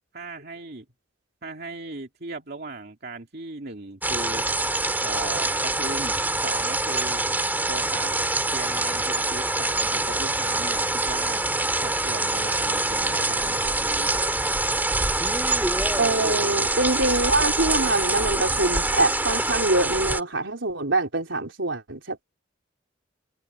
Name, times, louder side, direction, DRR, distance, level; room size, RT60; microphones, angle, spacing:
voice 1, 0.1-0.8 1.4-4.4 5.0-7.2 7.7-8.1 8.5-11.4 11.8-14.1 16.6-16.7, right 2 dB, 55° right, 2.5 m, -37 dB
sound 1, 4.0-20.2, right 2 dB, 10° right, 2.4 m, -25 dB
voice 2, 16.0-22.2, right 2 dB, 75° right, 3.9 m, -24 dB
head